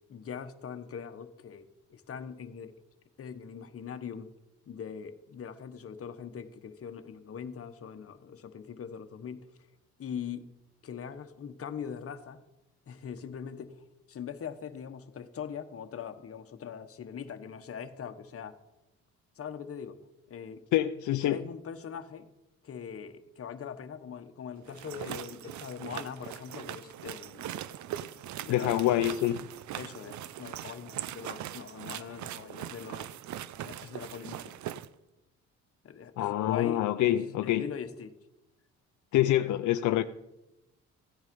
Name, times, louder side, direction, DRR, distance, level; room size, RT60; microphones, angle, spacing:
voice 1, 0.1-2.8 3.2-4.3 4.7-9.7 10.0-10.5 10.8-12.4 12.9-18.5 19.4-20.0 20.3-20.6 21.2-22.3 22.6-27.5 28.4-29.1 29.7-33.1 33.6-34.6 35.8-38.1, left 7 dB, 50° left, 8 dB, 1.2 m, -41 dB
voice 2, 20.7-21.4 28.5-29.4 36.2-37.6 39.1-40.0, left 13 dB, 75° left, 9 dB, 0.6 m, -26 dB
sound 1, 24.7-34.9, right 12 dB, 70° right, 0.6 m, -41 dB
15.5 x 9.7 x 5.3 m, 0.96 s
cardioid pair, 90°, 30 cm